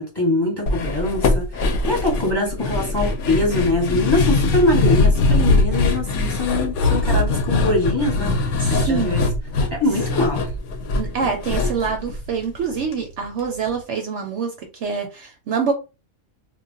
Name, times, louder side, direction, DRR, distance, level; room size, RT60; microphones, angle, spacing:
voice 1, 0.0-8.3 8.7-9.2 9.7-10.5, left 2 dB, 20° left, -2 dB, 1.0 m, -23 dB
sound 1, 0.7-12.9 13.2-13.3 13.7-13.8, left 3 dB, 65° left, 0.8 m, -21 dB
voice 2, 8.6-9.2 10.9-15.7, right 5 dB, 65° right, 3 dB, 0.8 m, -26 dB
2.3 x 2.1 x 3.7 m, 0.29 s
omnidirectional pair, 1.5 m